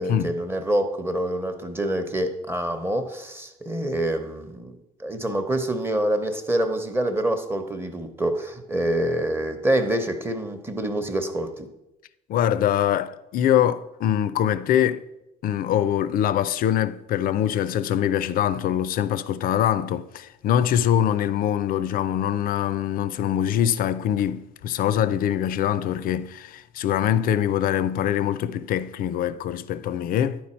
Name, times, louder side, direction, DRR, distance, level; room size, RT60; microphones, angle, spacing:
voice 1, 0.0-11.7, right 1 dB, 15° right, 0.8 m, -26 dB
voice 2, 12.3-15.1 15.4-30.4, left 10 dB, 60° left, 0.4 m, -23 dB
10.5 x 4.6 x 4.3 m
cardioid pair, 110°, 17 cm